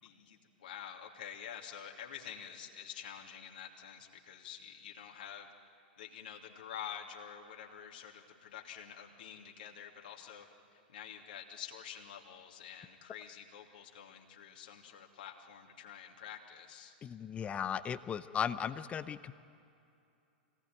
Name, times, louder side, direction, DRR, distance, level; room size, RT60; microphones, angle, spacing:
voice 1, 0.0-5.5 6.0-10.5 10.7-16.9, left 9 dB, 65° left, 0 dB, 2.8 m, -48 dB
voice 2, 17.0-19.3, left 8 dB, 25° left, 13 dB, 0.7 m, -36 dB
25.5 x 19.5 x 9.3 m, 2.6 s
hypercardioid pair, 100°, 5 cm